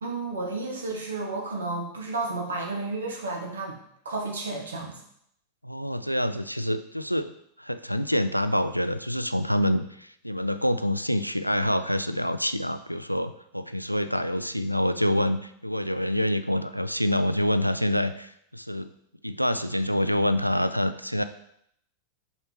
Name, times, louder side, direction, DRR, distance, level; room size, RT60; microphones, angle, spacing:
voice 1, 0.0-3.8 4.0-5.0, right 3 dB, 70° right, 0 dB, 1.3 m, -32 dB
voice 2, 5.6-18.9 19.2-21.2, equal, 90° left, 11 dB, 0.3 m, -26 dB
5.6 x 5.5 x 3.1 m, 0.71 s
figure-of-eight pair, 90°, 0 cm